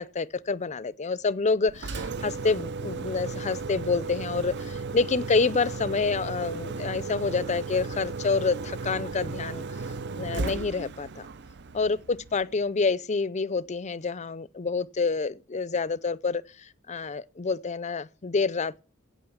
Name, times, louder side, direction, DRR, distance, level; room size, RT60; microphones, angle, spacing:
voice 1, 0.0-9.6 10.2-11.3 11.7-18.8, left 4 dB, 35° left, 0.5 m, -28 dB
Engine, 1.7-12.6, right 4 dB, 55° right, 0.7 m, -35 dB
16.5 x 6.3 x 7.2 m
head